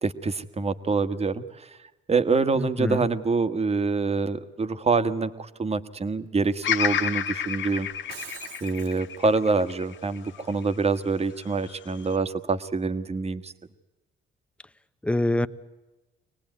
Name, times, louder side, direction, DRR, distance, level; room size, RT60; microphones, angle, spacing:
voice 1, 0.0-1.7 2.1-7.9 8.6-13.5, right 4 dB, 30° right, 10 dB, 1.4 m, -26 dB
voice 2, 2.5-3.1 15.0-15.5, left 1 dB, 5° left, 12 dB, 0.9 m, -25 dB
Bird vocalization bird call bird song, 6.6-10.9 11.4-12.2, left 8 dB, 70° left, 1.1 m, -30 dB
Shatter, 7.9-9.0, right 7 dB, 85° right, 2.3 m, -43 dB
25.0 x 19.0 x 9.5 m, 1.1 s
cardioid pair, 90°, 20 cm